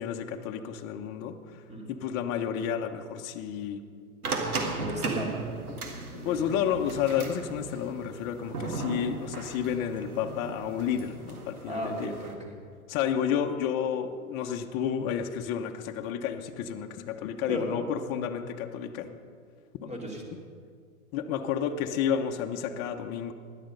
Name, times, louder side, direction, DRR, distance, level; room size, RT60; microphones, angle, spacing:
voice 1, 0.0-1.6 1.9-3.8 6.1-12.1 12.9-19.2 19.8-19.9 21.1-23.3, left 8 dB, 35° left, 4 dB, 1.0 m, -31 dB
sound 1, 4.2-12.3, right 3 dB, 85° right, 1.9 m, -36 dB
voice 2, 4.6-5.4 11.7-12.5 17.5-17.6 19.8-20.2, equal, 15° right, 1 dB, 2.8 m, -35 dB
16.5 x 11.0 x 5.4 m, 2.1 s
hypercardioid pair, 105°, 43 cm